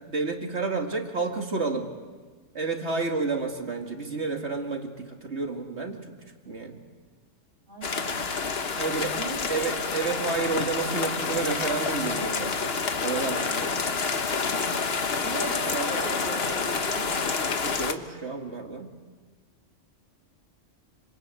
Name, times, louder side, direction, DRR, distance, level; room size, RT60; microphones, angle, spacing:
voice 1, 0.1-1.9 2.5-6.1 6.5-6.8 8.8-9.2 9.5-12.7 13.0-13.8 17.6-18.9, right 4 dB, 60° right, 3 dB, 2.4 m, -30 dB
voice 2, 7.7-8.3 9.2-9.4 14.3-14.8 15.2-17.2, right 2 dB, 40° right, -1 dB, 4.1 m, -37 dB
sound 1, 7.8-17.9, left 4 dB, 50° left, 1.5 m, -28 dB
27.0 x 26.0 x 8.3 m, 1.4 s
omnidirectional pair, 1.3 m